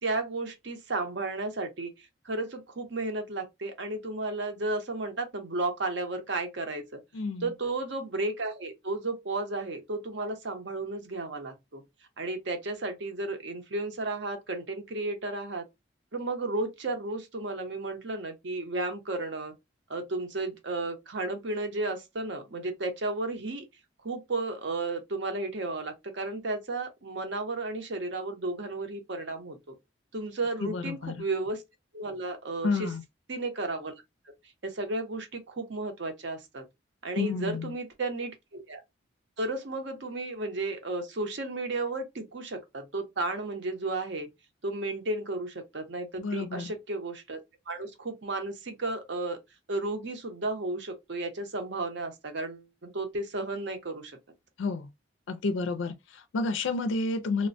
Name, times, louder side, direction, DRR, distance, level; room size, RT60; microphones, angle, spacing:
voice 1, 0.0-1.9 2.2-7.0 7.4-11.8 12.2-15.7 16.1-19.5 19.9-23.6 24.0-29.8 30.1-31.6 31.9-32.9 33.3-33.9 34.3-34.4 34.6-36.6 37.0-38.8 39.4-44.3 44.6-47.4 47.7-49.4 49.7-54.2, right 2 dB, 60° right, 0.7 m, -33 dB
voice 2, 7.1-7.5 30.6-31.1 32.6-33.0 37.2-37.7 46.2-46.7 54.6-54.9 55.3-57.5, left 3 dB, 70° left, 0.4 m, -30 dB
3.1 x 2.1 x 2.5 m
head